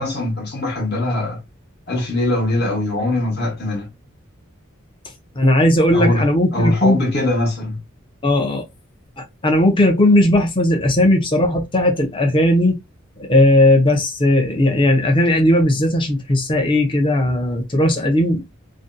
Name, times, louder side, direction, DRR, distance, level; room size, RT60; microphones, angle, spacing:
voice 1, 0.0-1.4 1.9-3.9 5.9-6.2 6.5-7.8, left 1 dB, 50° left, 1.0 m, -21 dB
voice 2, 5.3-7.0 8.2-8.6 9.2-12.8 13.2-18.4, left 1 dB, 25° left, 0.5 m, -16 dB
2.6 x 2.2 x 2.5 m
head